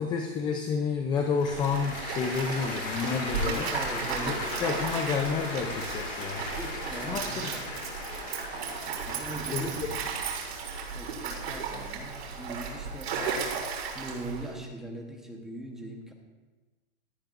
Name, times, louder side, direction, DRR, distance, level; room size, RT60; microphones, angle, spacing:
voice 1, 0.0-3.7 4.3-4.4 4.6-6.4 7.0-7.2 9.5-9.7, left 5 dB, 15° left, 3 dB, 0.5 m, -30 dB
Cheering / Applause, 1.1-13.4, left 2 dB, 35° left, 3.3 m, -38 dB
Stream, 1.5-14.5, right 5 dB, 85° right, 4.0 m, -35 dB
voice 2, 3.7-4.5 6.4-7.8 9.0-9.8 10.9-16.1, right 2 dB, ahead, 0 dB, 1.0 m, -41 dB
18.0 x 12.0 x 2.6 m, 1.3 s
supercardioid pair, 165°, 31 cm